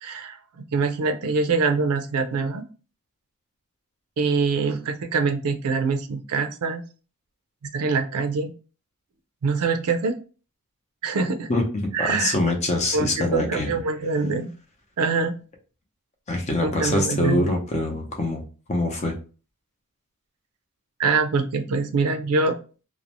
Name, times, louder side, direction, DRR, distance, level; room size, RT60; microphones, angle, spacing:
voice 1, 0.0-2.6 4.2-6.8 7.7-8.5 9.4-10.1 11.0-11.5 11.9-12.4 12.9-14.5 15.0-15.4 16.6-17.5 21.0-22.6, right 4 dB, 80° right, 8 dB, 0.4 m, -24 dB
voice 2, 12.0-13.7 16.3-18.4 18.7-19.1, left 2 dB, 30° left, 2 dB, 0.6 m, -24 dB
2.5 x 2.0 x 2.9 m, 0.36 s
head